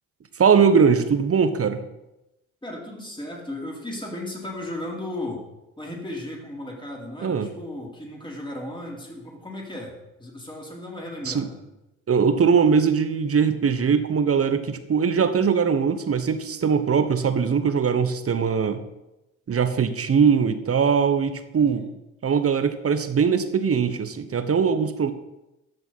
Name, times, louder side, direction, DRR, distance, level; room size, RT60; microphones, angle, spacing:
voice 1, 0.4-1.8 7.2-7.5 11.2-11.5 12.1-18.8 19.5-21.9 22.2-25.1, right 6 dB, 40° right, 10 dB, 1.2 m, -21 dB
voice 2, 2.6-5.5 5.8-9.9 10.2-11.6 21.6-21.9, left 1 dB, 15° left, -2 dB, 4.1 m, -35 dB
13.5 x 6.6 x 4.3 m, 0.94 s
hypercardioid pair, 50°, 38 cm